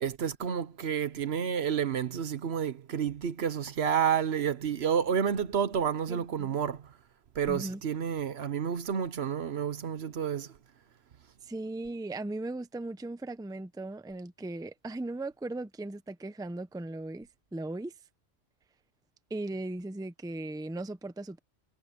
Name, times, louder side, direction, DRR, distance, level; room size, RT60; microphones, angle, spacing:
voice 1, 0.0-6.8 7.4-10.5, right 8 dB, 60° right, 1.0 m, -30 dB
voice 2, 6.1-6.6 7.5-7.8 11.5-17.9 19.3-21.4, right 2 dB, 5° right, 0.6 m, -38 dB
omnidirectional pair, 1.3 m